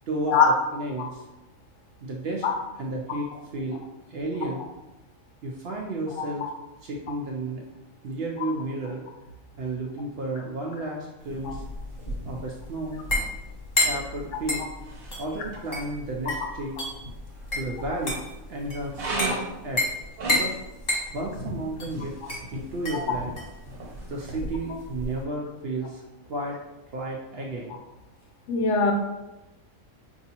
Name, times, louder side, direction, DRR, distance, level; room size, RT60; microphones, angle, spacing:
voice 1, 0.1-0.4 0.7-1.2 2.0-2.4 2.8-3.8 4.1-4.7 5.4-6.4 6.8-7.6 8.0-9.0 9.6-11.6 12.3-13.0 13.8-14.6 15.2-16.7 17.5-19.8 20.2-20.6 21.1-22.1 22.5-23.3 24.1-26.0 26.3-26.6 26.9-27.8, right 2 dB, 65° right, -1 dB, 0.7 m, -32 dB
sound 1, 11.3-25.2, left 1 dB, 35° left, 1.1 m, -31 dB
sound 2, 11.3-24.4, right 1 dB, 80° right, 1.4 m, -39 dB
voice 2, 28.5-28.9, left 6 dB, 70° left, 2 dB, 0.8 m, -21 dB
4.6 x 2.7 x 2.8 m, 0.99 s
omnidirectional pair, 1.4 m